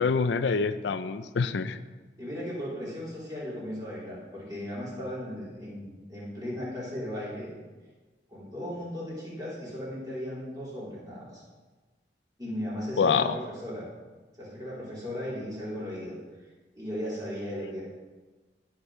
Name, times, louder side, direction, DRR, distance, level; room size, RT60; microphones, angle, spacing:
voice 1, 0.0-1.8 13.0-13.4, left 5 dB, 85° left, 12 dB, 0.4 m, -26 dB
voice 2, 2.2-7.5 8.3-11.4 12.4-13.3 13.6-13.9 14.4-16.2 16.7-17.8, equal, 20° right, -8 dB, 3.6 m, -36 dB
17.5 x 6.1 x 3.3 m, 1.3 s
head